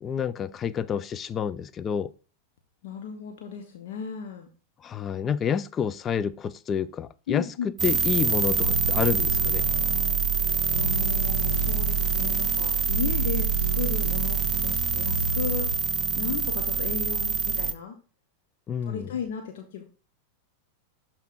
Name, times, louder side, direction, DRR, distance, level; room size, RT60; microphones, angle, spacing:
voice 1, 0.0-2.1 4.8-7.5 7.8-9.7 18.7-19.1, left 7 dB, 25° left, 0.4 m, -28 dB
voice 2, 2.8-4.5 7.3-7.7 10.8-15.7 16.2-17.9 18.9-19.8, left 7 dB, 55° left, 1.0 m, -35 dB
sound 1, 7.8-17.7, right 6 dB, 25° right, 0.6 m, -25 dB
sound 2, 8.6-15.8, right 1 dB, 90° right, 0.5 m, -33 dB
12.5 x 4.4 x 2.5 m
figure-of-eight pair, 90°, 0 cm